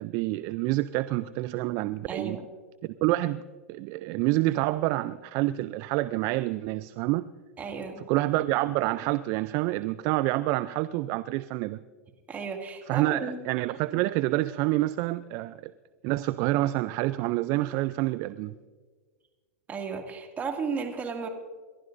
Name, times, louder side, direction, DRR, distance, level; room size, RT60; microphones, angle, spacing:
voice 1, 0.0-2.4 2.8-3.4 3.7-7.2 8.1-11.8 12.9-15.7 16.0-18.5, right 17 dB, 45° right, 14 dB, 0.4 m, -27 dB
voice 2, 2.1-2.5 7.6-8.0 12.3-13.4 19.7-21.3, right 5 dB, 20° right, 2 dB, 2.3 m, -34 dB
28.5 x 12.0 x 2.6 m, 1.5 s
hypercardioid pair, 105°, 8 cm